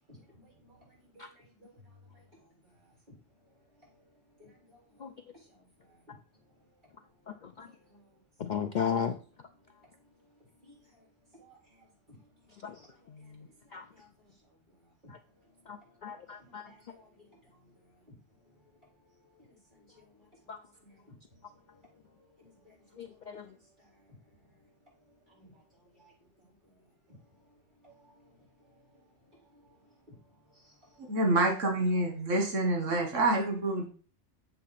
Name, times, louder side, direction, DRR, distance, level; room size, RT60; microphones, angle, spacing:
voice 1, 0.1-1.8 2.1-2.9 3.8-3.9 4.4-6.2 7.2-8.6 10.6-11.1 11.3-12.2 12.7-13.3 13.6-14.3 15.0-15.1 15.6-15.9 16.4-21.2 21.5-26.5 27.5-27.6 27.8-29.8 30.1-31.1 33.4-33.5, equal, 40° right, 4.1 m, -61 dB
voice 2, 7.3-7.7 8.4-9.2 12.6-12.7 13.1-13.2 13.7-13.8 15.7-16.6 20.5-20.6 23.0-23.5, left 7 dB, 55° left, 0.5 m, -35 dB
voice 3, 31.1-33.9, right 2 dB, 85° right, 1.7 m, -27 dB
7.8 x 3.7 x 5.7 m
omnidirectional pair, 1.3 m